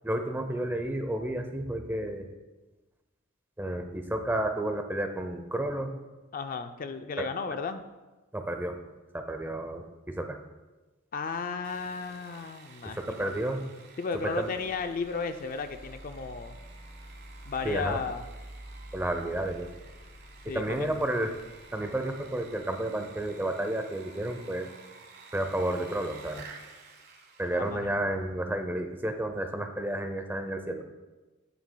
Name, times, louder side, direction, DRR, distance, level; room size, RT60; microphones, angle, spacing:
voice 1, 0.0-2.3 3.6-5.9 7.2-7.3 8.3-8.8 9.1-10.4 12.8-13.6 14.4-14.5 17.6-18.0 18.9-19.7 20.5-21.3 21.7-24.7 25.3-26.4 27.4-30.8, right 1 dB, 10° right, 6 dB, 0.6 m, -31 dB
voice 2, 6.3-7.8 11.1-13.3 14.0-16.6 17.5-18.3 20.5-20.9 27.6-28.0, left 4 dB, 40° left, 8 dB, 0.4 m, -34 dB
Sawing, 11.6-28.1, right 4 dB, 50° right, 1.1 m, -52 dB
sound 1, 14.4-23.1, equal, 80° right, 2.0 m, -49 dB
11.0 x 9.2 x 2.2 m, 1.2 s
head